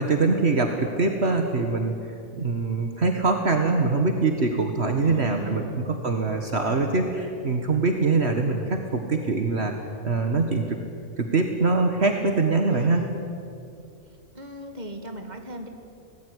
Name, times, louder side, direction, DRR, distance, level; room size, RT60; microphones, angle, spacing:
voice 1, 0.0-1.9 2.4-9.7 10.0-10.8 11.2-13.0, right 3 dB, 55° right, 4 dB, 1.9 m, -23 dB
voice 2, 5.0-5.9 6.7-7.2 12.7-13.3 14.3-15.7, right 1 dB, 35° right, 5 dB, 2.5 m, -37 dB
25.5 x 19.5 x 9.9 m, 2.5 s
omnidirectional pair, 1.3 m